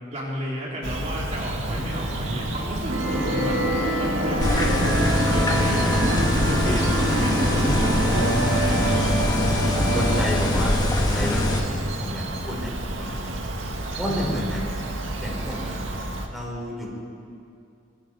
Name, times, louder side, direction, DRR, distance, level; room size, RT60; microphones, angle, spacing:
voice 1, 0.1-3.6 4.0-9.2 14.1-14.5, equal, 35° right, -4 dB, 3.9 m, -31 dB
Bird vocalization bird call bird song, 0.8-16.3, right 1 dB, 85° right, 2.0 m, -31 dB
sound 1, 2.9-10.2, right 1 dB, 70° right, 4.1 m, -25 dB
sound 2, 4.4-11.6, left 1 dB, 20° left, 2.4 m, -23 dB
voice 2, 9.9-13.2 14.0-14.6 15.2-15.8 16.3-16.9, equal, ahead, -3 dB, 5.2 m, -31 dB
27.0 x 22.5 x 4.9 m, 2.5 s
head